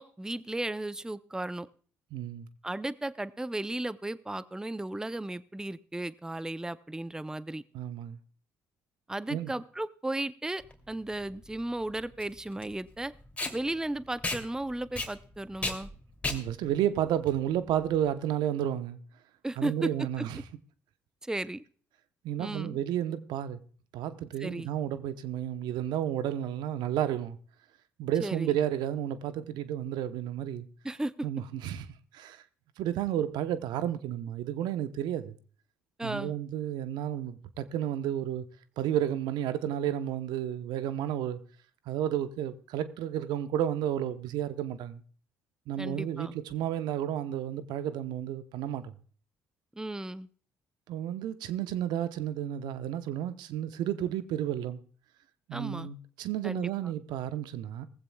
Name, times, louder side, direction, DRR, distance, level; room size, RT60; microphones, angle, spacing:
voice 1, 0.0-1.7 2.6-7.6 9.1-13.1 13.5-15.9 19.4-19.9 20.2-20.3 21.2-21.6 22.4-22.8 24.4-24.7 28.2-28.5 30.8-31.1 36.0-36.3 45.8-46.3 49.8-50.3 55.5-55.9 56.4-56.7, right 1 dB, 10° right, 0.6 m, -35 dB
voice 2, 2.1-2.5 7.7-8.2 9.3-9.5 16.3-19.0 19.6-20.4 22.2-23.6 23.9-27.4 28.0-30.7 31.2-31.9 32.1-32.4 32.8-35.3 36.0-38.4 38.8-41.4 41.9-45.0 45.7-48.9 50.9-54.8 55.5-57.9, right 11 dB, 70° right, 0.8 m, -32 dB
Packing tape duct tape, 10.6-18.1, left 2 dB, 15° left, 2.8 m, -37 dB
18.5 x 15.0 x 2.3 m
hypercardioid pair, 50°, 8 cm